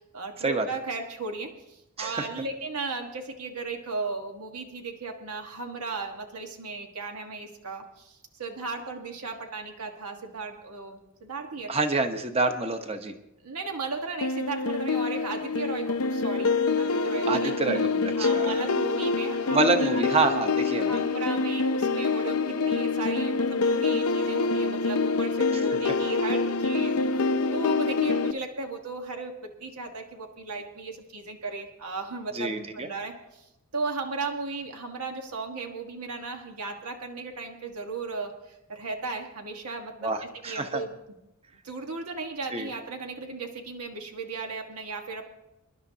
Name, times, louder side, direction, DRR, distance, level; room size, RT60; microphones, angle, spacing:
voice 1, 0.0-11.7 13.4-20.1 20.9-27.1 27.4-40.9 41.6-45.3, right 3 dB, 90° right, 3 dB, 1.5 m, -36 dB
voice 2, 11.7-13.1 17.2-18.6 19.5-20.9 32.3-32.9 40.0-40.8 42.5-42.7, right 3 dB, 25° right, 7 dB, 0.9 m, -27 dB
sound 1, 14.2-28.3, left 4 dB, 75° left, 0.6 m, -26 dB
25.5 x 11.0 x 2.8 m, 0.90 s
head